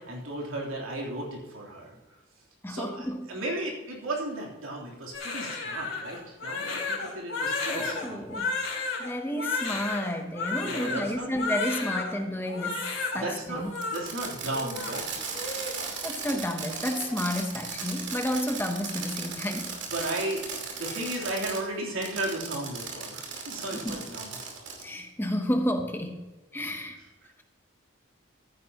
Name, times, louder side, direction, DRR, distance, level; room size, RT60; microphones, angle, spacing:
voice 1, 0.0-1.9 2.7-8.2 10.6-11.3 13.1-13.6 13.9-15.0 19.9-20.4 20.7-24.3, right 1 dB, 85° right, -2 dB, 3.2 m, -34 dB
voice 2, 2.6-3.3 7.7-13.7 16.0-19.8 23.7-24.0 24.8-26.2 26.5-27.0, equal, 10° left, 5 dB, 0.8 m, -31 dB
Crying sobbing, 5.1-12.1 12.4-13.2 13.5-14.0 14.5-15.8 16.1-16.4 16.7-17.2, left 4 dB, 90° left, 3.6 m, -33 dB
Fireworks, 13.8-21.6 22.0-24.9, right 5 dB, 60° right, 2.5 m, -36 dB
14.0 x 10.0 x 2.9 m, 1.2 s
head